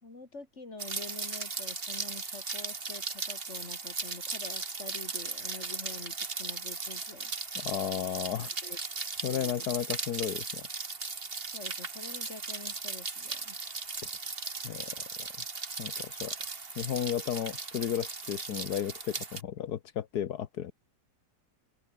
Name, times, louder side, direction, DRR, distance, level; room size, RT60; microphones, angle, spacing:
voice 1, 0.0-7.3 8.6-8.8 9.2-9.7 11.5-13.6, left 3 dB, 45° left, 4.1 m, -47 dB
Rain, 0.8-19.4, right 4 dB, 40° right, 2.1 m, -37 dB
voice 2, 7.6-8.6 9.2-10.7 14.6-15.3 15.8-16.3 16.8-20.7, left 10 dB, 80° left, 1.6 m, -34 dB
open air
omnidirectional pair, 1.6 m